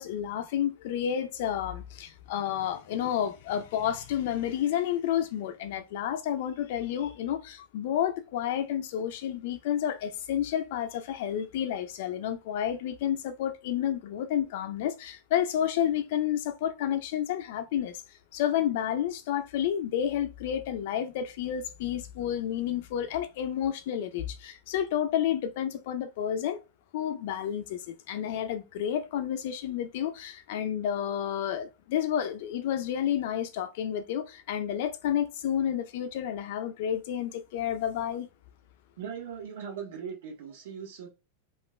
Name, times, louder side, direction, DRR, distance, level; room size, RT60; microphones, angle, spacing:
voice 1, 0.0-18.0 18.3-26.6 26.9-38.3, left 10 dB, 50° left, 0.4 m, -30 dB
voice 2, 39.0-41.1, right 7 dB, 70° right, 1.4 m, -39 dB
3.0 x 2.4 x 3.2 m
supercardioid pair, 175°, 0 cm